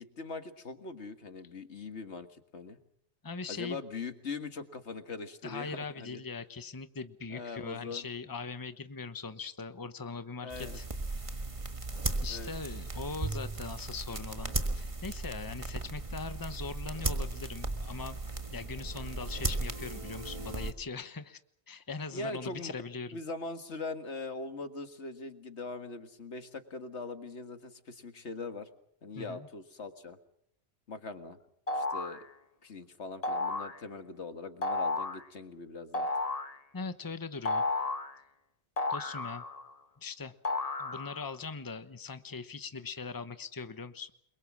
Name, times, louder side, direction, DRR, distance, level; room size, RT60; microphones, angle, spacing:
voice 1, 0.0-2.8 3.5-6.2 7.3-8.0 10.4-10.8 12.3-12.5 22.1-22.7 23.1-28.7 29.0-30.2 30.9-31.4 31.7-32.2 32.6-36.1, left 3 dB, 85° left, 8 dB, 2.1 m, -41 dB
voice 2, 3.2-3.8 5.4-10.8 12.2-18.2 18.5-21.4 21.7-23.2 29.1-29.5 36.7-37.6 38.9-39.4 40.0-40.3 40.8-44.1, left 4 dB, 20° left, 11 dB, 1.0 m, -41 dB
sound 1, 10.5-20.7, right 2 dB, 30° right, 1.7 m, -36 dB
sound 2, 31.7-32.2 33.2-33.8 34.6-35.2 35.9-36.6 37.4-38.1 38.8-39.7 40.4-41.3, left 2 dB, 35° left, 1.3 m, -32 dB
29.0 x 22.5 x 6.2 m, 0.67 s
omnidirectional pair, 1.1 m